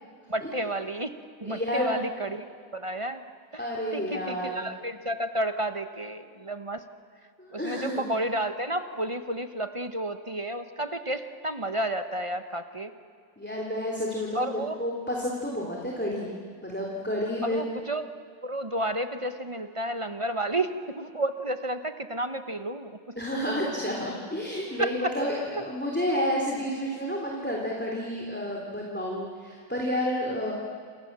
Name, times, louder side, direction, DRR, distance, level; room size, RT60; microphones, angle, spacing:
voice 1, 0.3-2.4 2.7-3.2 3.5-3.6 3.9-6.8 7.5-12.9 14.3-14.8 17.4-18.1 18.4-23.1 24.8-25.1, right 1 dB, 25° right, 9 dB, 0.7 m, -31 dB
voice 2, 1.4-1.9 3.6-4.6 7.4-8.0 13.4-16.3 16.6-17.6 23.2-30.5, equal, 5° left, -2 dB, 3.3 m, -30 dB
29.0 x 27.0 x 7.5 m, 2.3 s
omnidirectional pair, 2.2 m